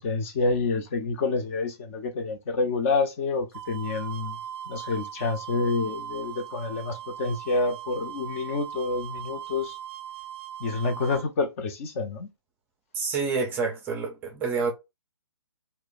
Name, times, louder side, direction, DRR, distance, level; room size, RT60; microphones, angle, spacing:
voice 1, 0.0-4.4 4.7-9.8 10.6-12.3, left 3 dB, 30° left, 0.6 m, -28 dB
sound 1, 3.5-11.2, right 10 dB, 60° right, 0.5 m, -39 dB
voice 2, 12.9-14.7, right 4 dB, 15° right, 0.6 m, -28 dB
2.2 x 2.1 x 3.8 m
figure-of-eight pair, 140°, 14 cm